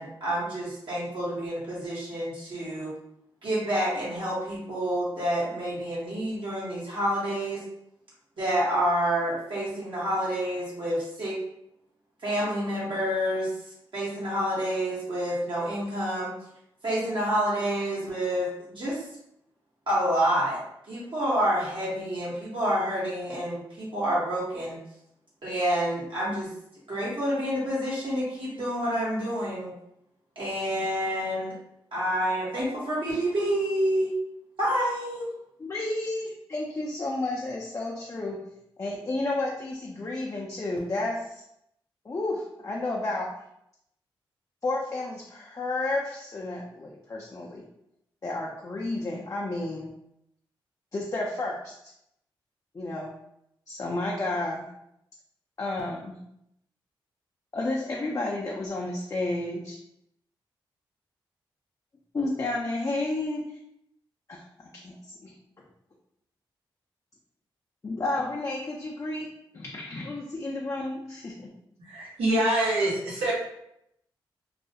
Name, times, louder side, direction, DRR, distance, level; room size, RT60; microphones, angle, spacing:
voice 1, 0.0-2.9 3.4-7.6 8.4-11.4 12.2-13.5 13.9-16.3 16.8-19.0 19.9-20.6 20.9-24.8 25.4-26.5 26.9-29.7 30.4-31.5 31.9-34.1 34.6-35.3, equal, 60° right, -7 dB, 1.0 m, -28 dB
voice 2, 35.6-38.4 38.8-41.4 42.0-43.3 44.6-47.6 48.2-49.9 50.9-51.7 52.7-53.1 53.7-54.7 55.6-56.2 57.5-59.8 62.1-63.6 64.3-65.0 65.2-65.3 67.8-69.3 69.5-71.5, left 2 dB, 35° left, -2 dB, 0.5 m, -31 dB
voice 3, 71.8-73.3, right 1 dB, 85° right, -7 dB, 0.9 m, -25 dB
2.4 x 2.1 x 2.7 m, 0.79 s
supercardioid pair, 45°, 9 cm